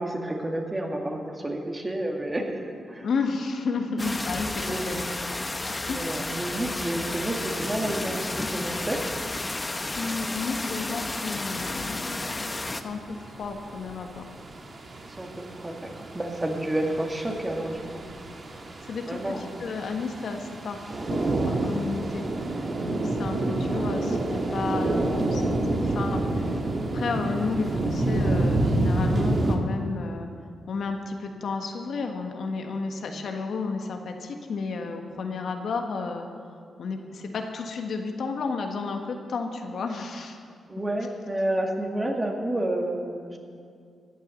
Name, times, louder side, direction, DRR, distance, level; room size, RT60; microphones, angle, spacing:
voice 1, 0.0-3.1 4.6-5.0 5.9-9.0 15.2-18.0 19.1-19.4 40.7-43.4, right 1 dB, 20° right, 2 dB, 2.2 m, -30 dB
voice 2, 3.0-5.0 5.9-6.2 9.9-14.4 18.8-22.3 22.6-30.3 30.7-36.3 36.8-40.4, left 4 dB, 70° left, 4 dB, 1.4 m, -32 dB
sound 1, 4.0-12.8, left 2 dB, 25° left, 0.9 m, -32 dB
sound 2, 12.0-29.6, right 2 dB, 45° right, 1.6 m, -28 dB
14.5 x 8.3 x 7.9 m, 2.2 s
cardioid pair, 70°, 0 cm